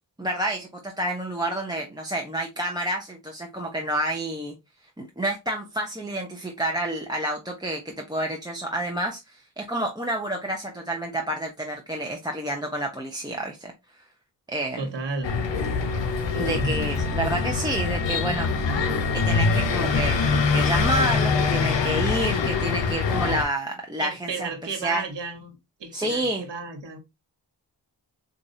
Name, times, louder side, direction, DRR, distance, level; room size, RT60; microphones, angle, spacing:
voice 1, 0.2-4.5 5.0-13.7 14.5-14.9 16.3-18.5 19.1-24.5 24.8-25.0 25.9-26.5, right 1 dB, 10° right, 0.8 m, -29 dB
voice 2, 14.8-15.3 16.3-16.8 24.0-27.0, right 4 dB, 75° right, 1.3 m, -33 dB
sound 1, 15.2-23.4, left 4 dB, 90° left, 0.8 m, -24 dB
4.6 x 2.6 x 2.7 m
cardioid pair, 50°, 43 cm